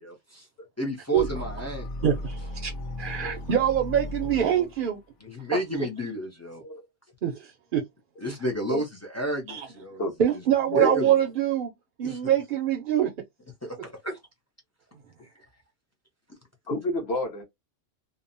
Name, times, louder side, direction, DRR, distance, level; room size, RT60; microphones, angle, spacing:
voice 1, 0.0-0.5 0.8-1.9 5.2-6.6 8.2-10.0 10.7-11.1 12.0-12.2 13.6-14.2, equal, 25° left, 0.4 m, -31 dB
sound 1, 1.1-4.9, left 1 dB, 75° left, 1.0 m, -36 dB
voice 2, 2.0-2.7 3.0-5.0 5.5-5.6 7.2-7.8 9.5-9.7 10.2-11.7 12.0-13.1, right 10 dB, 60° right, 0.6 m, -24 dB
voice 3, 16.7-17.4, left 1 dB, 60° left, 1.2 m, -29 dB
2.8 x 2.1 x 2.5 m
omnidirectional pair, 1.3 m